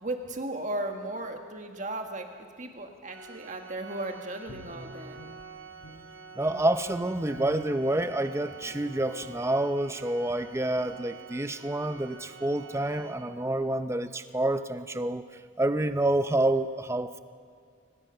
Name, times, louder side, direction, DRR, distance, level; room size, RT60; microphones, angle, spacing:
voice 1, 0.0-5.2, right 1 dB, 40° right, 4 dB, 1.7 m, -36 dB
Organ, 3.1-13.8, right 5 dB, 70° right, 1.1 m, -47 dB
Guitar, 4.4-6.2 6.4-8.2 8.6-8.8 9.2-9.5 9.9-10.0 10.3-10.5 10.7-11.0, equal, 80° left, 5.5 m, -47 dB
voice 2, 6.4-15.2 15.6-17.2, right 1 dB, 15° right, 11 dB, 0.6 m, -28 dB
23.5 x 19.5 x 5.7 m, 2.1 s
head